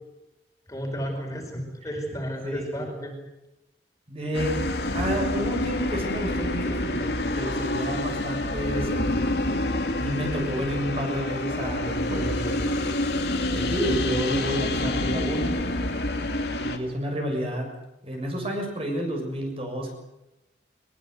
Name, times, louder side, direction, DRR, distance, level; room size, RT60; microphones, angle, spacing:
voice 1, 0.7-3.1, equal, 20° left, 2 dB, 5.0 m, -32 dB
voice 2, 2.4-2.9 4.1-4.7 4.9-9.3 9.7-12.7 13.5-15.6 16.5-17.7 18.0-19.9, equal, 30° right, 2 dB, 6.8 m, -30 dB
sound 1, 4.3-16.8, left 1 dB, 70° left, 2.6 m, -27 dB
22.5 x 22.0 x 8.0 m, 0.93 s
head